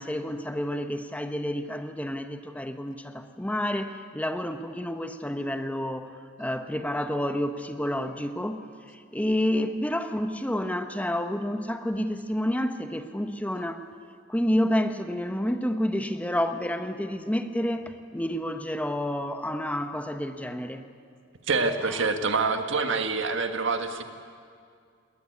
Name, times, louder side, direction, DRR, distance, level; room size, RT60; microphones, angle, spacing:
voice 1, 0.0-6.1 6.4-8.7 8.9-13.9 14.3-20.9, equal, 5° left, 8 dB, 0.9 m, -29 dB
voice 2, 21.5-24.0, right 4 dB, 65° right, 7 dB, 1.6 m, -26 dB
19.5 x 19.5 x 9.4 m, 2.2 s
head